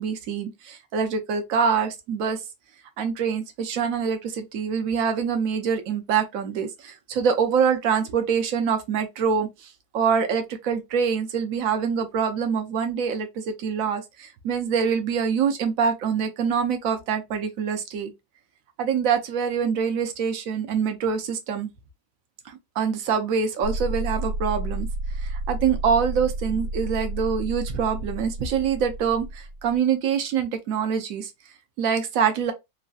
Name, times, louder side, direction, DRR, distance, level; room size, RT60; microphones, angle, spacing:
voice 1, 0.0-2.4 3.0-9.7 9.9-18.1 18.8-21.7 22.5-24.9 25.2-31.3 31.8-32.5, right 6 dB, 65° right, 0.9 m, -25 dB
sound 1, 23.6-29.8, right 2 dB, 55° left, 0.8 m, -31 dB
3.1 x 2.6 x 2.2 m
omnidirectional pair, 1.7 m